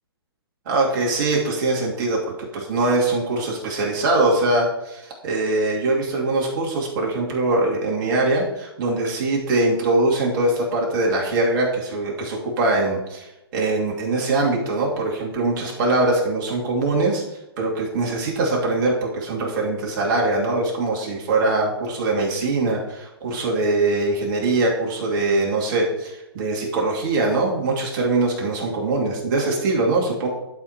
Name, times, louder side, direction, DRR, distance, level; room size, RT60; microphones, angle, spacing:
voice 1, 0.7-17.2 17.6-30.3, right 2 dB, 50° right, -2 dB, 2.5 m, -22 dB
12.0 x 5.1 x 2.9 m, 0.94 s
hypercardioid pair, 130°, 13 cm